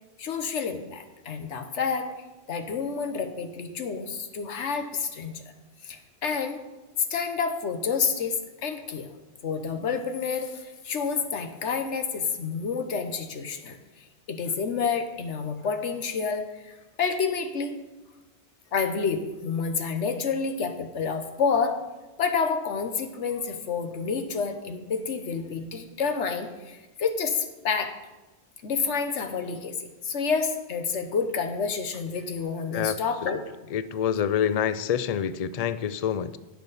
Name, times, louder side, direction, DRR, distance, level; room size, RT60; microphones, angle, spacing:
voice 1, 0.2-2.1 2.5-5.4 5.8-6.6 7.1-9.1 9.4-17.8 18.7-21.8 22.2-27.9 28.6-33.4, left 5 dB, 80° left, 7 dB, 1.3 m, -29 dB
voice 2, 33.7-36.4, left 8 dB, 65° left, 14 dB, 0.3 m, -26 dB
16.0 x 6.3 x 4.1 m, 1.1 s
omnidirectional pair, 1.2 m